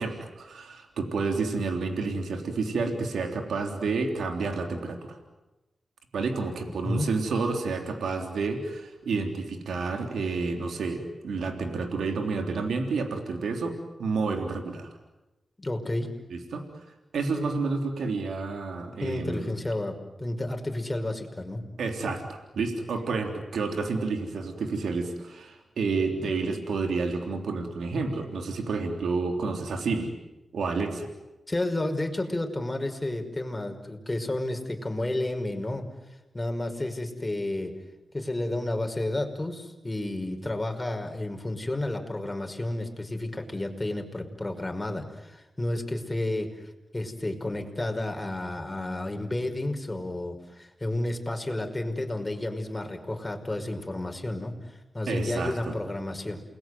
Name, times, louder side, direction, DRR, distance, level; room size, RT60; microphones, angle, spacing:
voice 1, 0.0-5.2 6.1-14.9 16.3-16.6 17.1-19.4 21.8-30.1 30.5-31.1 55.1-55.7, right 4 dB, 80° right, 4 dB, 3.5 m, -30 dB
voice 2, 6.6-7.1 15.6-16.1 19.0-21.6 31.5-37.8 38.1-56.4, left 1 dB, 25° left, 4 dB, 5.6 m, -31 dB
29.0 x 21.5 x 9.5 m, 1.0 s
supercardioid pair, 45°, 0 cm